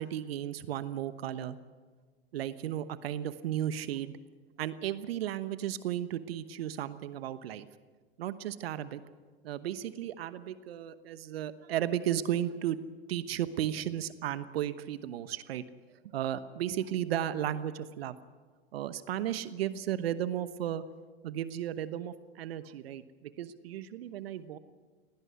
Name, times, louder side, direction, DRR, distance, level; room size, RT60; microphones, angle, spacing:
voice 1, 0.0-1.6 2.3-4.2 4.6-7.7 8.2-9.0 9.4-12.8 13.1-15.6 16.0-18.1 18.7-20.8 21.2-24.6, right 11 dB, 70° right, 14 dB, 1.1 m, -34 dB
20.5 x 17.5 x 9.5 m, 1.4 s
hypercardioid pair, 95°, 31 cm